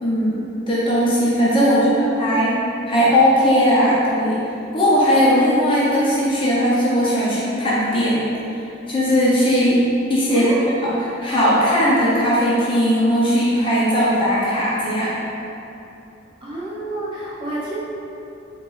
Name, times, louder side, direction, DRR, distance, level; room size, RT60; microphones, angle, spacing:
voice 1, 0.0-2.5 2.9-4.4 4.7-8.2 8.5-8.6 8.9-9.8 10.1-10.4 10.8-10.9 11.2-15.1, equal, 25° left, -8 dB, 0.6 m, -18 dB
voice 2, 1.6-2.5 10.3-10.6 16.4-17.8, right 1 dB, 25° right, -8 dB, 0.6 m, -28 dB
3.7 x 2.9 x 3.1 m, 2.9 s
head